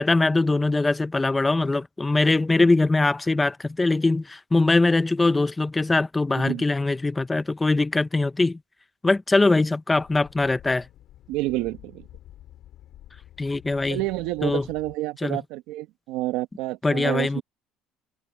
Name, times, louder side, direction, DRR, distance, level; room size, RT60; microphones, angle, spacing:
voice 1, 0.0-8.6 9.0-10.9 13.4-14.0 14.4-14.7 15.2-15.4 16.8-17.4, left 2 dB, 15° left, 0.8 m, -22 dB
voice 2, 6.3-6.6 11.3-12.0 13.9-17.4, right 17 dB, 80° right, 1.5 m, -29 dB
sound 1, 9.9-15.0, left 13 dB, 60° left, 6.6 m, -49 dB
cardioid pair, 125°, 0 cm